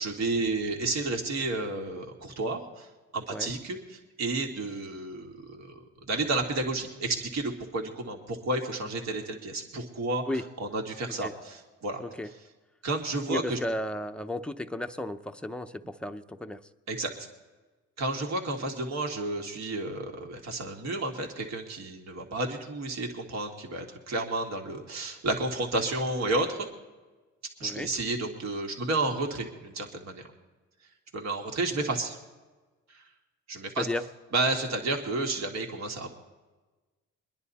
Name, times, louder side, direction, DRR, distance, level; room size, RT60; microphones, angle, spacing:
voice 1, 0.0-2.9 3.1-10.2 10.6-12.0 12.8-13.6 16.9-17.1 18.0-26.7 27.6-30.2 31.1-32.2 32.9-33.0 33.5-33.9 34.3-36.1, right 2 dB, 60° right, 2 dB, 2.1 m, -31 dB
voice 2, 13.3-16.6 27.6-27.9 33.8-34.0, left 1 dB, 5° left, 7 dB, 0.7 m, -34 dB
23.5 x 10.5 x 4.2 m, 1.2 s
cardioid pair, 90°, 30 cm